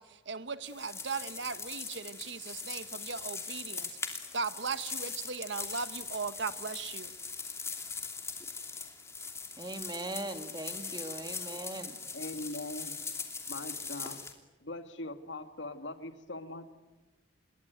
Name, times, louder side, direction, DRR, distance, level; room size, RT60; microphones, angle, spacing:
voice 1, 0.0-4.0 4.3-7.1, right 5 dB, 65° right, 1.2 m, -38 dB
sound 1, 0.6-14.3, left 4 dB, 15° left, 2.9 m, -41 dB
voice 2, 9.6-12.0, right 2 dB, 20° right, 2.2 m, -40 dB
voice 3, 12.1-13.0 13.5-14.2 14.6-16.7, left 2 dB, 75° left, 2.0 m, -41 dB
27.5 x 22.0 x 9.3 m
head